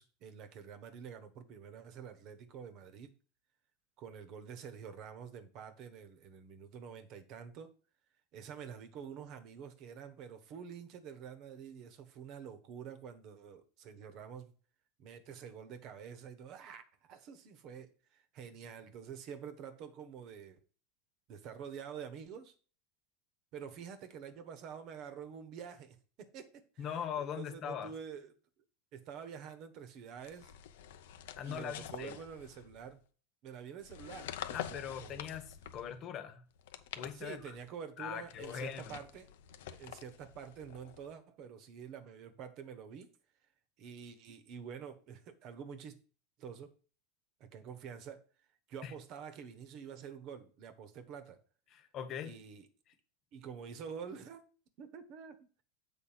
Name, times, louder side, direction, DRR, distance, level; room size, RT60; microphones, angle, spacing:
voice 1, 0.0-3.1 4.0-7.7 8.3-14.5 15.0-20.6 21.3-22.5 23.5-26.8 27.3-28.3 28.9-30.5 31.5-33.0 33.4-35.3 37.1-39.3 39.7-43.1 43.8-46.0 46.4-46.7 47.4-48.2 48.7-51.4 52.2-52.7 53.3-54.4 54.8-55.6, right 7 dB, 55° right, 1.2 m, -48 dB
voice 2, 26.8-27.9 31.4-32.1 34.5-36.5 36.9-37.5 38.0-39.0 48.8-48.9 51.7-52.3, left 8 dB, 45° left, 1.2 m, -41 dB
sound 1, 30.2-33.0 33.8-36.0 36.5-37.7 38.3-41.1, left 11 dB, 75° left, 0.7 m, -47 dB
7.3 x 4.0 x 5.8 m
hypercardioid pair, 105°, 0 cm